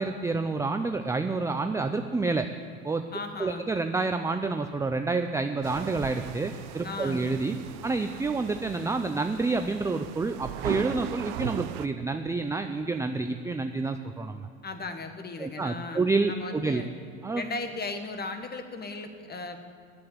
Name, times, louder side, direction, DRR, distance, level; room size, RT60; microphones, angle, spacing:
voice 1, 0.0-2.5 2.8-3.0 3.4-7.6 7.8-14.5 15.4-16.8 17.2-17.4, right 3 dB, 10° right, 7 dB, 0.4 m, -28 dB
voice 2, 3.1-3.7 6.8-7.3 14.6-16.9 17.3-19.6, left 3 dB, 25° left, 7 dB, 1.4 m, -36 dB
sound 1, 5.6-11.9, right 14 dB, 60° right, 0.6 m, -38 dB
8.5 x 8.0 x 9.2 m, 2.3 s
hypercardioid pair, 85°, 39 cm